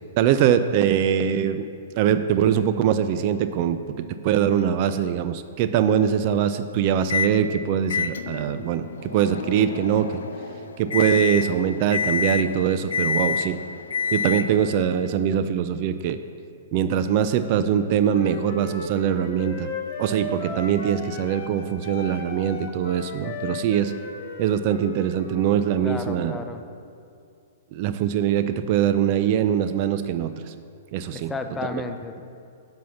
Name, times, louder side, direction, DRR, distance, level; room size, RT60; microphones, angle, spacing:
voice 1, 0.2-1.7 2.0-10.2 10.8-13.6 14.1-16.2 16.7-19.7 20.0-23.9 24.4-26.4 27.7-30.3 30.9-31.3, right 9 dB, 45° right, 10 dB, 0.4 m, -22 dB
Microwave oven, 7.1-7.4 7.9-14.7, left 6 dB, 75° left, 0.5 m, -28 dB
Wind instrument woodwind instrument, 18.0-21.6 21.8-25.7, left 3 dB, 45° left, 1.4 m, -35 dB
voice 2, 25.8-26.6 31.1-32.2, left 3 dB, 10° left, 6 dB, 0.6 m, -32 dB
7.5 x 5.6 x 7.1 m, 2.4 s
hypercardioid pair, 120°, 0 cm